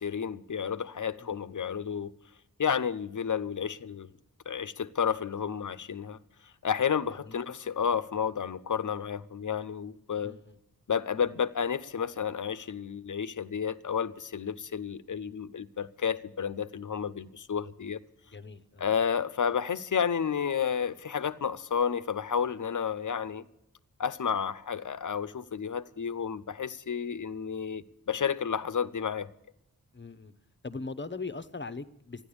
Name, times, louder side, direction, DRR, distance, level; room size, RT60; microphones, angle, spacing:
voice 1, 0.0-2.1 2.6-4.1 4.5-6.2 6.6-10.4 10.9-18.0 18.8-23.5 24.0-29.3, left 7 dB, 60° left, 0.7 m, -31 dB
voice 2, 10.2-10.6 18.3-18.9 29.9-30.3 30.6-32.3, left 3 dB, 30° left, 0.9 m, -40 dB
13.5 x 10.5 x 8.6 m
wide cardioid pair, 70°, 35 cm